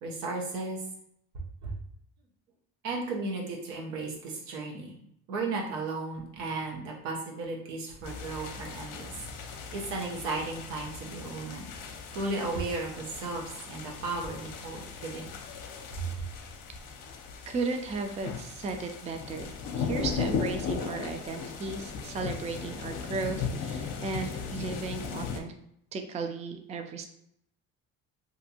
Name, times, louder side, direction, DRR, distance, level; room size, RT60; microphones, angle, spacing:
voice 1, 0.0-0.8 1.6-1.7 2.8-5.0 5.3-9.1 9.7-11.7 12.1-15.3 15.9-16.3, right 3 dB, 85° right, -1 dB, 0.8 m, -35 dB
sound 1, 8.0-25.4, left 6 dB, 55° left, 0.6 m, -37 dB
voice 2, 17.5-25.5 25.9-27.1, right 4 dB, 20° right, 5 dB, 0.3 m, -35 dB
2.6 x 2.4 x 2.7 m, 0.73 s
hypercardioid pair, 65°, 39 cm